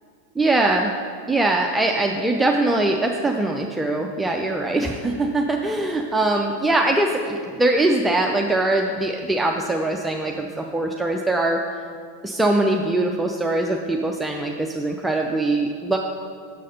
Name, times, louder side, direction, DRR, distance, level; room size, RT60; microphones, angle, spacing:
voice 1, 0.4-0.9 1.3-11.6 12.2-16.0, right 2 dB, 5° right, 2 dB, 0.4 m, -22 dB
6.7 x 6.4 x 5.3 m, 2.2 s
figure-of-eight pair, 90°, 0 cm